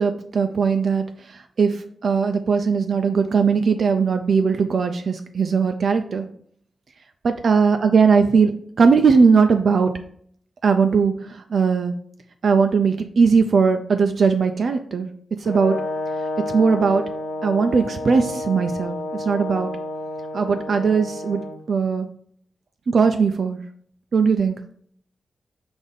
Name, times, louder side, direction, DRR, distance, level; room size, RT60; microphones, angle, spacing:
voice 1, 0.0-6.3 7.2-8.5 8.8-9.9 10.6-11.9 12.4-15.1 15.4-15.8 16.5-17.0 17.4-19.7 20.3-21.4 21.7-22.1 22.9-23.6 24.1-24.6, right 5 dB, 60° right, 7 dB, 0.3 m, -19 dB
Brass instrument, 15.4-21.6, left 2 dB, 65° left, 1.0 m, -30 dB
5.1 x 2.6 x 3.9 m, 0.62 s
wide cardioid pair, 135°, 0 cm